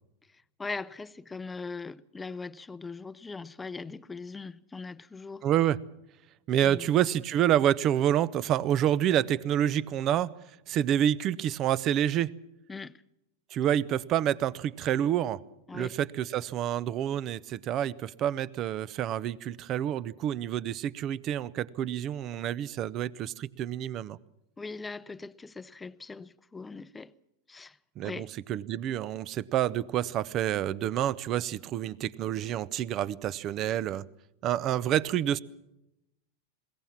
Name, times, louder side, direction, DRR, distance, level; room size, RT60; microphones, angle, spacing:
voice 1, 0.6-5.5 6.6-6.9 12.7-13.0 15.7-16.0 24.6-27.1 27.5-27.8 28.0-28.3, left 4 dB, 15° left, 0.6 m, -40 dB
voice 2, 5.4-5.8 6.5-10.3 10.7-12.3 13.5-15.4 15.7-24.2 28.0-34.1 34.4-35.4, right 11 dB, 40° right, 0.7 m, -28 dB
21.0 x 17.5 x 7.3 m
hypercardioid pair, 100°, 0 cm